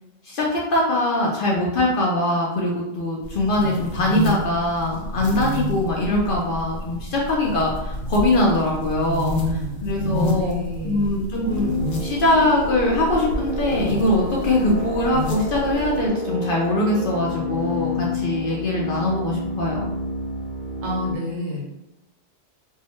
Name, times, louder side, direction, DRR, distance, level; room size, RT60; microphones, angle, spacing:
voice 1, 0.2-10.5 10.8-19.9, left 1 dB, 60° left, -3 dB, 0.6 m, -22 dB
sound 1, 3.2-16.1, equal, 80° left, 1.0 m, -30 dB
voice 2, 10.1-11.2 20.8-21.7, left 2 dB, 90° right, -2 dB, 1.2 m, -29 dB
sound 2, 11.4-21.2, left 2 dB, 60° right, 0.7 m, -30 dB
2.7 x 2.1 x 2.9 m, 0.90 s
omnidirectional pair, 1.3 m